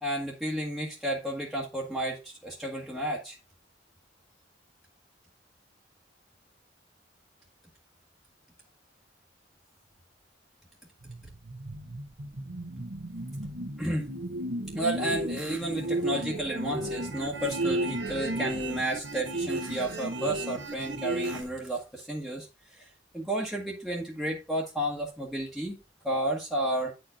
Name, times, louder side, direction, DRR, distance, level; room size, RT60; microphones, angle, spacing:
voice 1, 0.0-3.4 13.8-14.1 14.7-22.9 23.1-25.8 26.0-26.9, right 1 dB, ahead, 1.3 m, -32 dB
sound 1, 11.0-21.4, right 1 dB, 75° right, 1.3 m, -34 dB
9.6 x 4.6 x 4.3 m
head